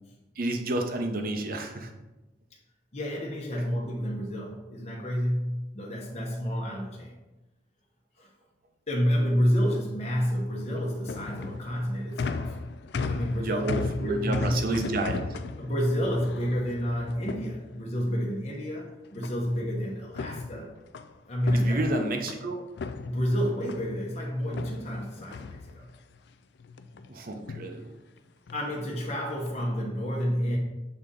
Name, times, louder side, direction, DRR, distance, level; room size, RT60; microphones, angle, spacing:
voice 1, 0.4-1.9 13.4-15.4 21.5-22.6 27.1-27.9, right 2 dB, 55° right, 4 dB, 0.8 m, -30 dB
voice 2, 2.9-7.2 8.2-8.3 8.9-12.6 13.0-14.7 15.6-20.7 21.3-21.8 23.0-25.8 28.5-30.6, equal, 40° left, -2 dB, 1.0 m, -29 dB
sound 1, 10.6-18.1 19.2-19.7 20.0-22.5 22.8-24.0 24.5-26.2 26.6-27.1 27.4-27.7 28.5-28.8 29.3-29.6, left 4 dB, 70° left, 0.4 m, -36 dB
6.7 x 4.0 x 3.7 m, 1.0 s
head